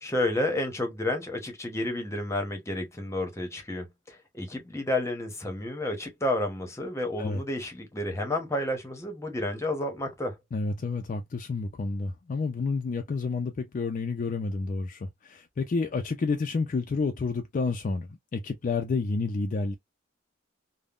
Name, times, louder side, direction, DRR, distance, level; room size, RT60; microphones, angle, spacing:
voice 1, 0.0-10.4, left 1 dB, 15° left, 0.8 m, -31 dB
voice 2, 10.5-19.7, left 4 dB, 45° left, 0.3 m, -30 dB
3.5 x 2.0 x 2.4 m
head